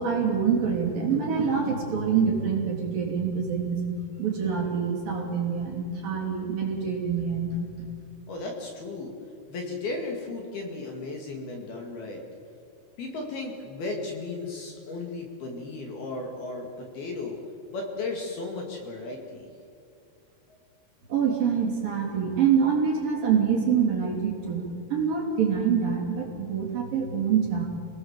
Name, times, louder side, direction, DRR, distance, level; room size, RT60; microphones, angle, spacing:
voice 1, 0.0-3.9 4.2-7.6 21.1-27.7, right 6 dB, 45° right, -1 dB, 4.6 m, -25 dB
voice 2, 8.3-9.1 9.5-12.2 13.0-17.4 17.7-19.5 20.5-20.6, left 3 dB, 55° left, 1 dB, 3.7 m, -35 dB
27.5 x 18.5 x 7.6 m, 2.5 s
omnidirectional pair, 5.9 m